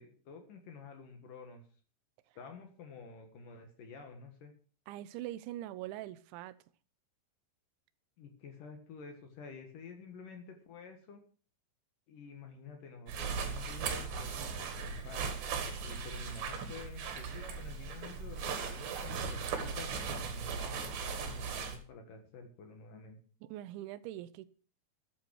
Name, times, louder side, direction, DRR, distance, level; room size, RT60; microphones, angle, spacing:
voice 1, 0.0-1.6 2.4-4.5 8.2-11.2 12.1-15.3 15.8-23.2, left 5 dB, 60° left, 2.6 m, -50 dB
voice 2, 4.9-6.5 23.5-24.5, right 14 dB, 90° right, 3.1 m, -42 dB
sound 1, 13.1-21.8, right 5 dB, 70° right, 4.0 m, -38 dB
12.5 x 9.2 x 6.3 m
omnidirectional pair, 5.3 m